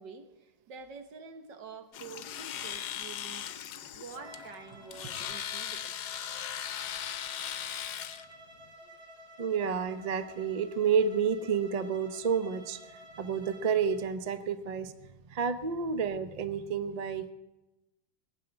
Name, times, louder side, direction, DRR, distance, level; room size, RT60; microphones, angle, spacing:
voice 1, 0.0-3.5 3.9-5.9 8.8-8.9, right 5 dB, 70° right, 7 dB, 1.9 m, -47 dB
Domestic sounds home sounds, 1.9-8.2, left 10 dB, 65° left, 1.2 m, -38 dB
Bowed string instrument, 4.1-14.1, equal, 20° right, 2.9 m, -53 dB
voice 2, 9.4-17.3, right 6 dB, 85° right, 11 dB, 0.3 m, -30 dB
18.5 x 7.5 x 9.7 m, 1.0 s
omnidirectional pair, 2.0 m